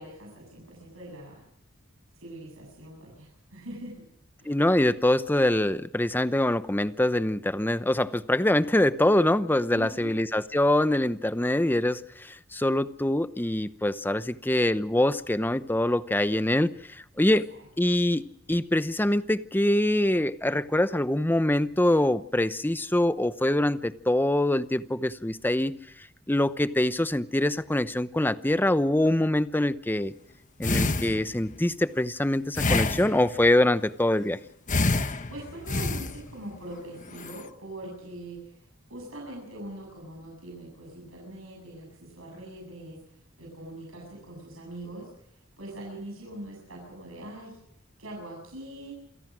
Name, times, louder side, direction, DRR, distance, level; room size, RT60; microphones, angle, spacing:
voice 1, 0.0-1.4 2.1-4.0 4.4-4.6 9.7-10.2 17.2-17.7 35.3-47.6 48.0-48.9, right 1 dB, 85° right, -1 dB, 7.6 m, -42 dB
voice 2, 4.5-17.4 17.8-25.8 26.3-30.1 30.6-34.4, left 1 dB, 10° left, 13 dB, 0.8 m, -24 dB
sound 1, 30.6-31.5 32.5-33.5 34.7-36.6 37.1-37.5, left 3 dB, 40° left, 1.3 m, -27 dB
28.0 x 17.0 x 6.3 m, 0.76 s
head